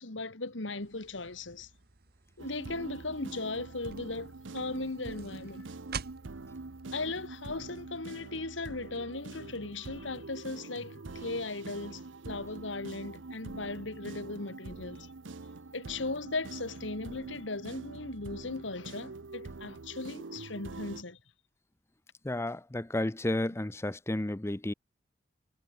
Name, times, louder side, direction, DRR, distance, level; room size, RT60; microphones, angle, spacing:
voice 1, 0.0-1.7 2.4-5.8 6.9-15.1 15.7-21.2, left 3 dB, 85° left, 2.4 m, -38 dB
sound 1, 0.8-7.9, right 6 dB, 55° right, 1.5 m, -48 dB
sound 2, 2.4-21.0, right 3 dB, 90° right, 0.9 m, -45 dB
voice 2, 22.2-24.7, left 1 dB, 15° left, 0.6 m, -32 dB
head